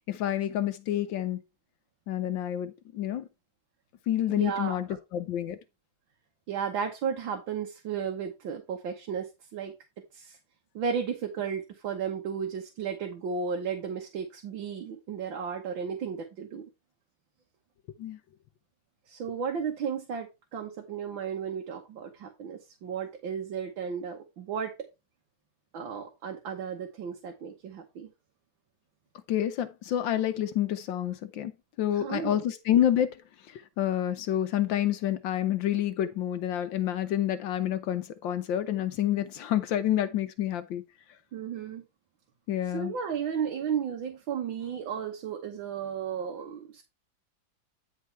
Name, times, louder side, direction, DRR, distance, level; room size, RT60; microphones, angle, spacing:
voice 1, 0.1-1.4 2.1-3.3 4.1-5.6 18.0-18.2 29.3-31.5 31.8-33.2 33.5-40.8 42.5-42.9, left 11 dB, 80° left, 1.4 m, -28 dB
voice 2, 4.3-4.8 6.5-9.7 10.1-10.4 10.8-16.7 19.1-24.7 25.7-28.1 32.0-32.4 41.3-41.8 42.7-46.8, right 7 dB, 75° right, 1.9 m, -34 dB
9.7 x 4.4 x 4.5 m
omnidirectional pair, 2.1 m